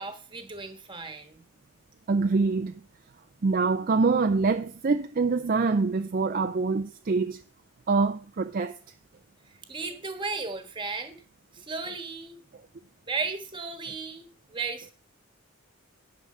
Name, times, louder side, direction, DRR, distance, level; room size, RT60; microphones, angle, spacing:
voice 1, 0.0-1.4 9.7-11.2 11.5-12.4 13.1-14.9, right 4 dB, 20° right, 1.4 m, -35 dB
voice 2, 2.1-2.8 3.4-7.4 7.9-8.8, right 4 dB, 40° right, 0.4 m, -25 dB
10.0 x 4.6 x 6.6 m
head